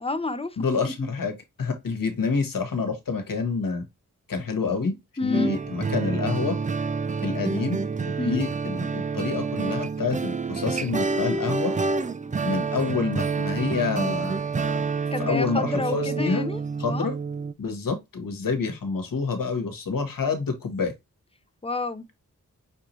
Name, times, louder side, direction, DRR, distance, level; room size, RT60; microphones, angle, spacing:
voice 1, 0.0-0.6 0.8-0.9 5.2-5.5 8.2-8.4 15.1-17.1 21.6-22.0, left 2 dB, 20° left, 0.6 m, -29 dB
voice 2, 0.6-3.8 4.3-5.0 5.2-6.6 7.2-11.7 12.4-14.8 15.2-16.4 16.8-17.2 17.6-20.9, left 4 dB, 85° left, 1.3 m, -28 dB
sound 1, 5.3-17.5, right 4 dB, 25° right, 0.4 m, -28 dB
6.1 x 2.8 x 3.0 m
cardioid pair, 60°, 33 cm